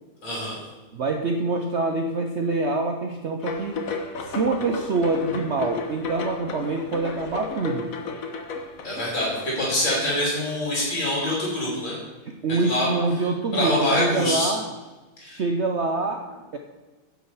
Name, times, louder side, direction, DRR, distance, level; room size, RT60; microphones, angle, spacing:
voice 1, 0.2-0.6 8.8-11.9 12.5-12.9 13.5-14.5 15.2-15.4, left 1 dB, 65° left, -5 dB, 4.1 m, -25 dB
voice 2, 0.9-3.9 4.3-7.9 12.3-14.6 15.2-16.2 16.5-16.6, right 3 dB, 85° right, 4 dB, 0.6 m, -25 dB
sound 1, 3.4-11.5, left 3 dB, 50° left, 1.3 m, -34 dB
10.5 x 6.4 x 7.0 m, 1.2 s
omnidirectional pair, 2.2 m